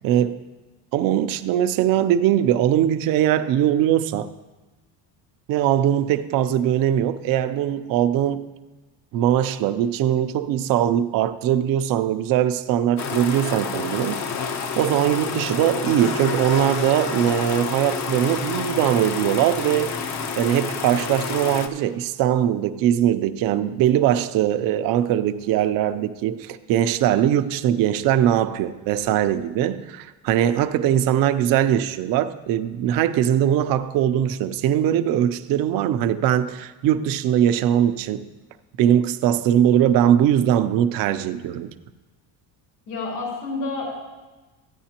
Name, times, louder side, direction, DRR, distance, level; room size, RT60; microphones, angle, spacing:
voice 1, 0.0-0.4 0.9-4.3 5.5-8.5 9.1-14.2 14.8-19.9 20.3-38.3 38.8-41.7, right 11 dB, 60° right, 0.6 m, -21 dB
sound 1, 13.0-21.7, left 5 dB, 45° left, 0.8 m, -29 dB
voice 2, 42.9-43.9, left 3 dB, 75° left, 3.6 m, -29 dB
14.0 x 9.5 x 2.9 m
cardioid pair, 145°, 40 cm